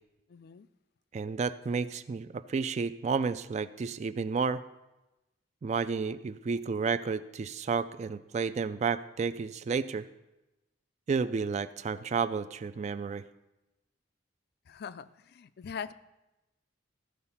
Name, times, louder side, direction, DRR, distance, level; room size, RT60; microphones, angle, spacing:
voice 1, 0.3-0.7 14.7-15.9, left 7 dB, 55° left, 16 dB, 0.4 m, -42 dB
voice 2, 1.1-4.6 5.6-10.1 11.1-13.2, right 5 dB, 35° right, 13 dB, 0.3 m, -31 dB
14.0 x 4.7 x 5.6 m, 0.99 s
head